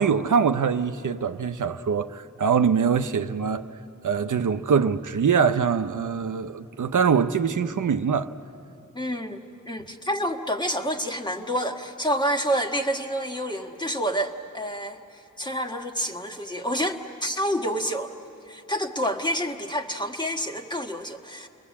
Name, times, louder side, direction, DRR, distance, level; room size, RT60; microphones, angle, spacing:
voice 1, 0.0-3.7 4.0-8.3, right 6 dB, 75° right, 0.7 m, -23 dB
voice 2, 8.9-9.4 9.7-15.0 15.4-18.1 18.5-21.5, equal, 15° left, 1.6 m, -28 dB
29.5 x 21.5 x 8.5 m
wide cardioid pair, 85°, 30 cm